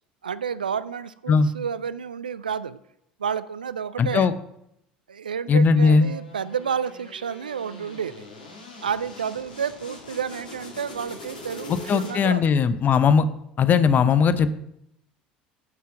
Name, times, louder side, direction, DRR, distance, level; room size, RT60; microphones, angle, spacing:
voice 1, 0.2-2.8 3.2-4.3 5.1-8.3 8.8-12.4, right 7 dB, 90° right, 16 dB, 0.4 m, -30 dB
voice 2, 4.0-4.3 5.5-6.1 11.7-13.2 13.6-14.5, left 5 dB, 40° left, 13 dB, 0.7 m, -19 dB
sound 1, 5.7-12.5, left 2 dB, 85° left, 1.9 m, -43 dB
9.5 x 5.8 x 5.8 m, 0.79 s
hypercardioid pair, 70°, 5 cm